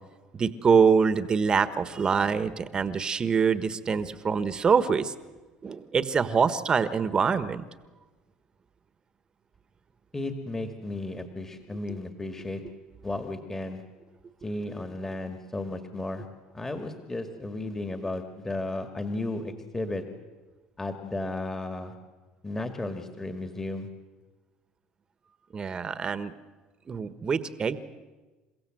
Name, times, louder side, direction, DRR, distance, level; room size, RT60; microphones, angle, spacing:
voice 1, 0.3-5.1 5.6-7.6 25.5-26.3 26.9-27.8, right 6 dB, 30° right, 13 dB, 1.3 m, -24 dB
voice 2, 10.1-12.6 13.0-13.8 14.4-16.2 16.5-20.0 20.8-21.9 22.4-23.9, left 2 dB, 15° left, 6 dB, 2.0 m, -34 dB
29.5 x 16.0 x 7.8 m, 1.2 s
supercardioid pair, 95°, 3 cm